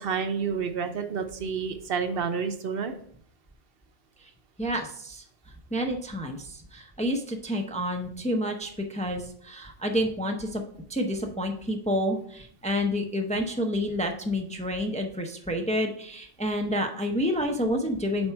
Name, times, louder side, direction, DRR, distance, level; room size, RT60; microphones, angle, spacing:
voice 1, 0.0-3.0, right 6 dB, 70° right, 8 dB, 0.9 m, -29 dB
voice 2, 4.6-5.2 5.7-10.6 10.9-18.3, equal, 10° left, 3 dB, 0.5 m, -29 dB
7.3 x 4.4 x 4.5 m, 0.63 s
omnidirectional pair, 1.0 m